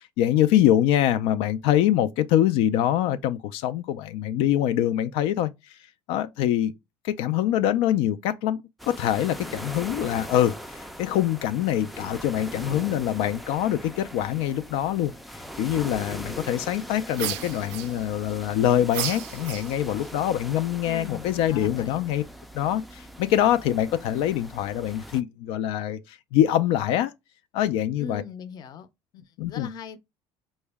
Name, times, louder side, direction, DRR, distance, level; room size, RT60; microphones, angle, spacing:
voice 1, 0.2-5.5 6.1-6.7 7.0-8.6 8.9-15.1 15.6-22.2 22.5-27.1 27.5-28.2 29.4-29.7, left 11 dB, 85° left, 0.4 m, -24 dB
sound 1, 8.8-25.2, equal, ahead, 0.3 m, -40 dB
sound 2, 17.1-18.3 18.9-20.1, right 13 dB, 90° right, 0.4 m, -33 dB
voice 2, 20.8-22.0 28.0-28.9 29.1-30.0, left 6 dB, 45° left, 0.6 m, -40 dB
4.6 x 2.1 x 3.4 m
cardioid pair, 145°, 10 cm